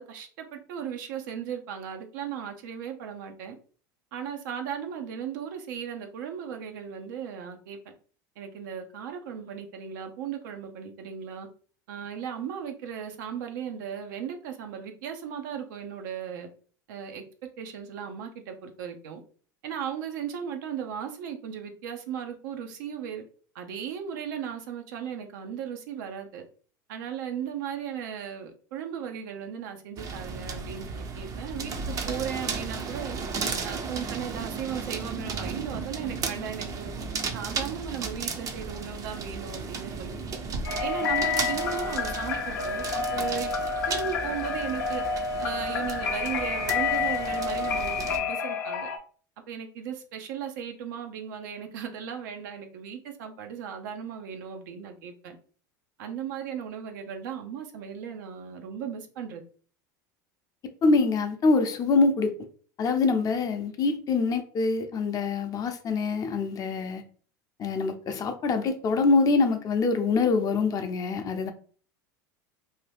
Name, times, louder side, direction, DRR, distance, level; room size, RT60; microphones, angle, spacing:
voice 1, 0.0-3.6 4.1-7.8 8.4-11.5 11.9-16.5 16.9-17.2 17.6-19.2 19.6-23.2 23.5-26.4 26.9-33.2 33.6-36.9 37.3-40.2 40.8-43.5 43.9-45.0 45.4-48.9 49.5-55.4 56.0-59.4, right 8 dB, 75° right, 0.6 m, -36 dB
sound 1, 30.0-48.2, right 4 dB, 35° right, 0.5 m, -35 dB
sound 2, 40.6-49.0, left 4 dB, 85° left, 0.6 m, -29 dB
voice 2, 60.8-62.3 62.8-67.0 67.6-71.5, left 4 dB, 35° left, 0.6 m, -24 dB
2.7 x 2.2 x 3.3 m
hypercardioid pair, 95°, 10 cm